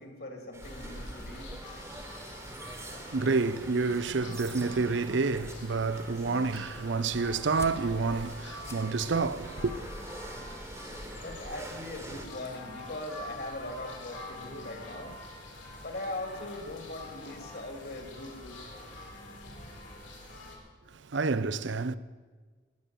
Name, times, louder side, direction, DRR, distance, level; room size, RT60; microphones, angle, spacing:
voice 1, 0.0-1.5 11.2-15.1 15.8-18.6, left 1 dB, 50° left, 2.6 m, -40 dB
sound 1, 0.5-12.3, right 2 dB, 15° right, 1.3 m, -46 dB
sound 2, 0.6-20.6, left 1 dB, 70° left, 3.7 m, -45 dB
voice 2, 2.9-9.7 21.1-22.0, right 4 dB, 70° right, 0.6 m, -29 dB
sound 3, 7.3-11.3, left 1 dB, 15° left, 0.8 m, -52 dB
20.0 x 6.9 x 9.1 m
head